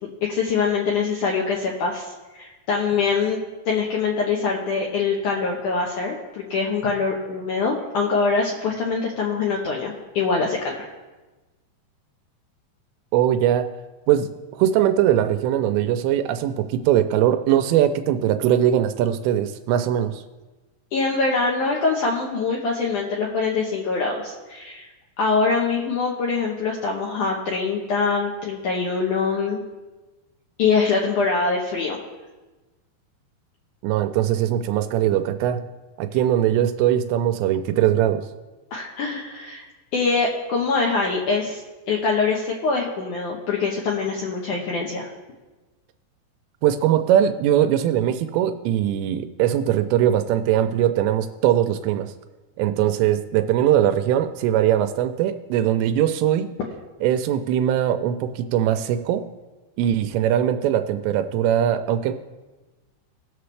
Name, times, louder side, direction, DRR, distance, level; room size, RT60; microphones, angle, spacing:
voice 1, 0.2-3.4 3.7-10.9 20.9-24.9 25.2-29.6 30.6-32.0 38.7-39.6 39.9-41.6 41.9-45.1, left 4 dB, 85° left, -2 dB, 1.8 m, -24 dB
voice 2, 13.1-13.7 14.1-14.3 14.6-20.2 33.8-35.7 36.0-38.3 46.6-52.1 52.6-56.5 57.0-59.2 59.8-62.1, right 11 dB, 85° right, 8 dB, 2.8 m, -21 dB
19.5 x 6.9 x 3.2 m, 1.2 s
omnidirectional pair, 5.0 m